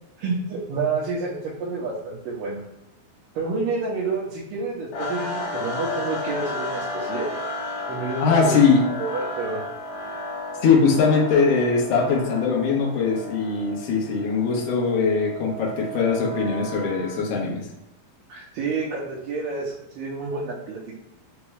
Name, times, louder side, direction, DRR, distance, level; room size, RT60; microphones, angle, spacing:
voice 1, 0.2-2.6 3.4-7.3 7.9-8.6 9.0-9.6 18.3-21.0, right 4 dB, 75° right, -7 dB, 2.3 m, -29 dB
sound 1, 4.9-17.3, left 1 dB, 65° left, 1.9 m, -33 dB
voice 2, 8.2-8.8 10.6-17.6, left 5 dB, 85° left, -2 dB, 1.4 m, -21 dB
5.9 x 2.3 x 3.2 m, 0.88 s
omnidirectional pair, 4.2 m